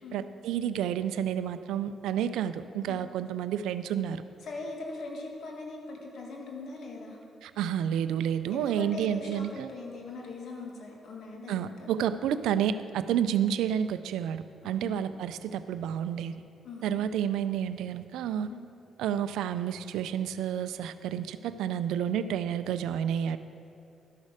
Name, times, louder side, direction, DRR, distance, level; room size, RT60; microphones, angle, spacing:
voice 1, 0.0-4.2 7.4-9.7 11.5-16.3 16.8-18.5 19.0-23.4, right 9 dB, 85° right, 12 dB, 0.3 m, -30 dB
voice 2, 4.4-7.2 8.5-11.9 14.8-14.9 16.6-17.0 18.5-18.6, left 3 dB, 70° left, 0 dB, 1.7 m, -41 dB
12.5 x 6.4 x 4.8 m, 2.6 s
supercardioid pair, 60°, 0 cm